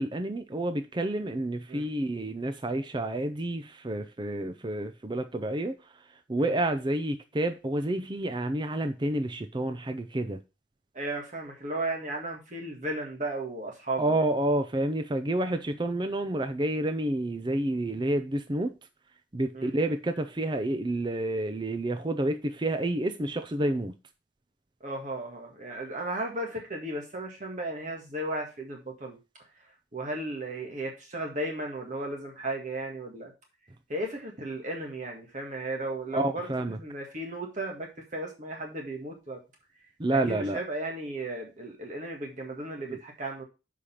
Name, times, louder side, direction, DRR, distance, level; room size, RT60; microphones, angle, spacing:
voice 1, 0.0-5.8 6.3-10.4 14.0-18.7 19.3-23.9 36.1-36.8 40.0-40.6 42.9-43.0, right 1 dB, 25° right, 0.5 m, -29 dB
voice 2, 10.9-14.2 19.5-19.7 24.8-29.2 29.9-33.3 33.9-36.5 36.8-39.4 40.1-43.4, right 2 dB, 45° right, 1.8 m, -35 dB
6.6 x 5.1 x 5.6 m
head